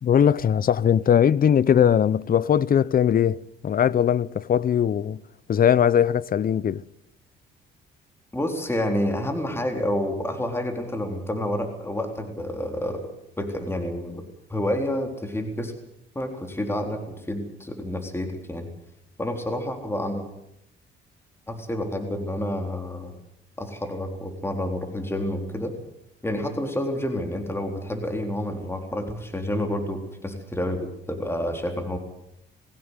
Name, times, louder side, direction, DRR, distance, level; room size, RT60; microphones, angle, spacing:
voice 1, 0.0-5.2 5.5-6.8, left 8 dB, 45° left, 0.7 m, -20 dB
voice 2, 8.3-13.1 13.4-14.2 14.5-15.7 16.2-17.0 17.3-18.7 19.2-20.2 21.5-23.1 23.6-25.8 26.2-32.0, left 1 dB, 10° left, 3.8 m, -29 dB
21.5 x 16.5 x 8.2 m
cardioid pair, 90°, 20 cm